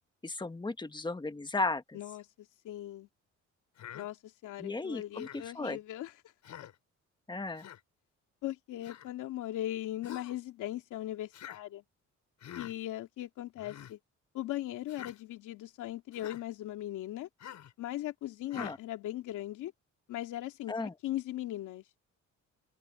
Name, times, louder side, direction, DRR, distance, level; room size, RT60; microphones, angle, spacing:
voice 1, 0.2-2.0 4.6-5.8 7.3-7.6 18.5-18.8 20.7-20.9, left 3 dB, 15° left, 1.6 m, -35 dB
voice 2, 1.9-3.1 3.9-6.1 8.4-11.8 12.6-14.0 14.3-17.3 17.8-19.7 20.1-21.8, left 14 dB, 85° left, 2.7 m, -39 dB
Human voice, 3.8-4.1 5.2-5.5 6.4-6.7 7.6-7.8 8.8-9.1 10.0-10.4 11.3-11.6 12.4-12.7 13.6-13.9 14.9-15.2 16.1-16.4 17.4-17.7 18.5-18.8, left 10 dB, 65° left, 5.1 m, -46 dB
open air
cardioid pair, 90°, 30 cm